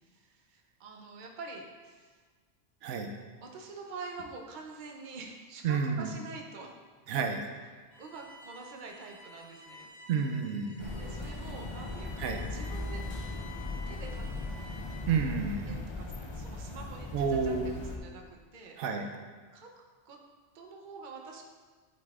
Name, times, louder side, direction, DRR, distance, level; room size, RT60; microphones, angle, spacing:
voice 1, 0.0-2.2 3.4-6.8 8.0-9.9 11.0-13.0 13.9-14.5 15.7-18.8 19.5-19.7 20.0-20.2 20.5-21.4, right 4 dB, 50° right, 1 dB, 0.8 m, -46 dB
voice 2, 5.6-6.1 7.1-7.4 10.1-10.9 12.2-12.4 15.1-15.8 17.1-17.8 18.8-19.1, right 5 dB, 85° right, 4 dB, 0.9 m, -30 dB
Bowed string instrument, 7.9-15.2, left 3 dB, 20° left, 1.3 m, -51 dB
sound 1, 10.8-18.0, left 2 dB, 45° left, 0.4 m, -38 dB
9.9 x 4.0 x 2.4 m, 1.5 s
omnidirectional pair, 1.2 m